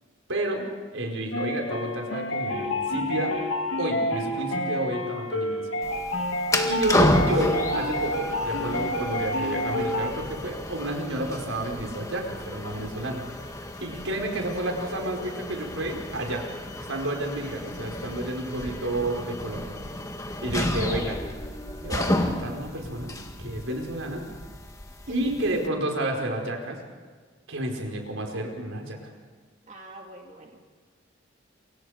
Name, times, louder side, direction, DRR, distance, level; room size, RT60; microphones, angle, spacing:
voice 1, 0.3-0.7 0.9-3.3 3.8-5.7 6.6-13.2 13.8-16.4 16.9-19.7 20.4-21.2 21.8-24.2 25.1-26.8 27.5-29.1, right 1 dB, 85° right, 2 dB, 4.9 m, -30 dB
sound 1, 1.3-10.1, left 1 dB, 75° left, 2.3 m, -29 dB
sound 2, 5.8-25.7, left 1 dB, 15° left, 1.7 m, -31 dB
voice 2, 29.6-30.7, right 1 dB, 35° right, 1 dB, 2.1 m, -46 dB
28.5 x 25.0 x 5.1 m, 1.5 s
head